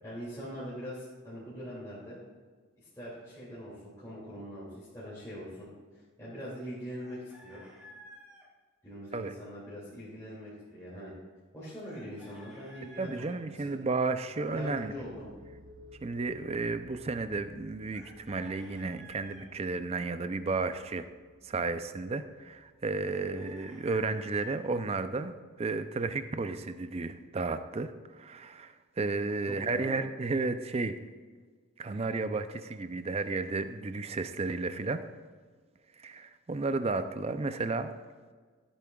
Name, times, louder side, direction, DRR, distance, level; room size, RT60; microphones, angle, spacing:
voice 1, 0.0-2.2 2.8-5.7 6.2-7.6 8.8-11.1 11.5-13.3 13.5-13.7 14.5-15.3 23.2-23.5 29.5-29.9, equal, 15° left, -10 dB, 2.4 m, -42 dB
Chicken rooster, 7.0-8.5 11.8-13.4 17.9-19.5 23.0-24.5, equal, 5° right, 1.8 m, -53 dB
voice 2, 13.0-14.9 16.0-21.1 21.4-25.3 25.6-30.9 31.8-35.0 36.0-37.9, right 3 dB, 30° right, 10 dB, 0.4 m, -33 dB
sound 1, 14.2-25.8, left 1 dB, 55° right, 1.2 m, -57 dB
14.5 x 8.4 x 2.3 m, 1.5 s
head